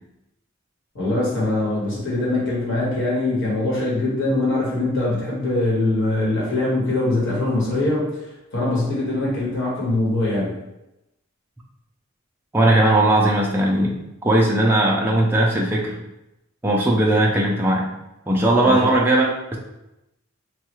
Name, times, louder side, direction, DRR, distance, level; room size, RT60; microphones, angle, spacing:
voice 1, 0.9-10.5 18.6-18.9, left 2 dB, 60° left, -6 dB, 1.2 m, -22 dB
voice 2, 12.5-16.0 16.6-17.9 18.3-19.6, right 1 dB, 10° right, -2 dB, 0.3 m, -18 dB
3.1 x 2.3 x 3.0 m, 0.91 s
head